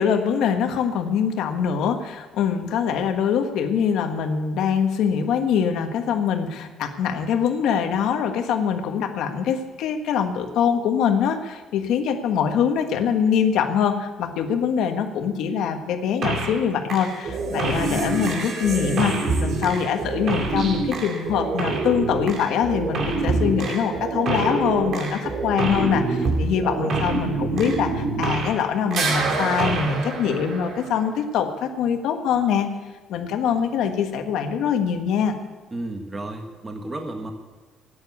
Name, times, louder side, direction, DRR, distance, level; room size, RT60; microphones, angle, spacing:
voice 1, 0.0-32.7 33.1-35.3, left 7 dB, 75° left, 6 dB, 1.5 m, -23 dB
sound 1, 16.2-16.6 16.9-28.6 28.9-31.1, right 3 dB, 55° right, 2.4 m, -26 dB
voice 2, 35.7-37.3, right 2 dB, 20° right, 4 dB, 1.5 m, -32 dB
13.5 x 9.4 x 8.2 m, 1.3 s
cardioid pair, 125°, 0 cm